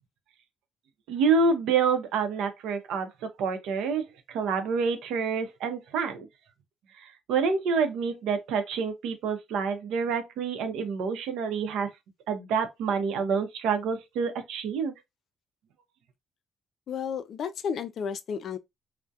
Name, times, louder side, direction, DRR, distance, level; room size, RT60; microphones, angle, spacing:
voice 1, 1.1-6.3 7.0-11.9 12.3-14.9, right 5 dB, 90° right, 0.6 m, -28 dB
voice 2, 16.9-18.6, left 7 dB, 65° left, 0.4 m, -32 dB
2.3 x 2.1 x 2.7 m
cardioid pair, 90°, 0 cm